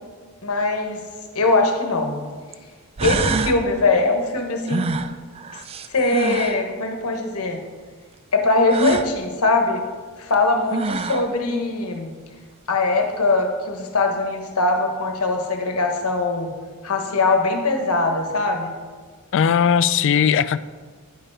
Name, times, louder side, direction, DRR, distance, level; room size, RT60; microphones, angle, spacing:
voice 1, 0.4-1.0 1.3-2.2 3.0-4.9 5.9-7.6 8.3-9.8 10.2-12.1 12.7-16.5 16.8-18.7, left 3 dB, 85° left, 4 dB, 1.2 m, -21 dB
sound 1, 1.5-1.6 2.5-2.6 3.0-3.6 4.7-6.6 8.7-9.1 10.3-10.4 10.7-11.3, right 4 dB, 25° right, 0.3 m, -25 dB
voice 2, 19.3-20.6, left 7 dB, 60° left, 15 dB, 0.3 m, -18 dB
10.0 x 5.5 x 4.8 m, 1.5 s
head